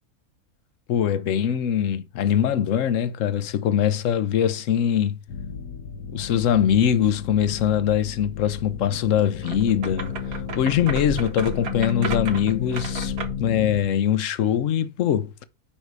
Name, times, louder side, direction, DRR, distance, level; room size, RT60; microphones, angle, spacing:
voice 1, 0.9-5.2 6.1-10.1 10.6-13.1 13.4-15.3, left 9 dB, 65° left, 1.0 m, -22 dB
sound 1, 5.3-13.8, left 8 dB, 85° left, 1.7 m, -33 dB
sound 2, 9.4-13.5, right 5 dB, 70° right, 1.5 m, -34 dB
7.4 x 5.4 x 4.7 m
omnidirectional pair, 1.6 m